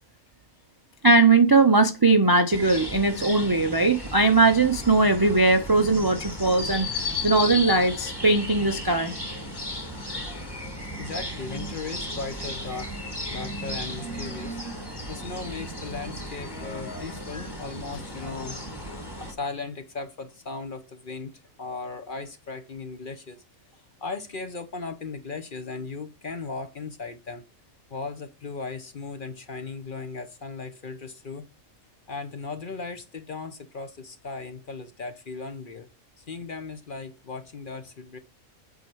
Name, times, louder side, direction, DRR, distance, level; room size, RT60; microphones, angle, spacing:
voice 1, 1.0-9.1, right 3 dB, 35° right, 0.3 m, -20 dB
sound 1, 2.5-19.3, left 1 dB, 15° left, 1.6 m, -35 dB
voice 2, 11.0-12.9 13.3-14.6 15.1-21.3 21.6-23.4 24.0-27.4 27.9-31.5 32.1-35.9 36.2-38.2, left 4 dB, 45° left, 0.9 m, -37 dB
8.2 x 4.4 x 4.6 m
omnidirectional pair, 1.5 m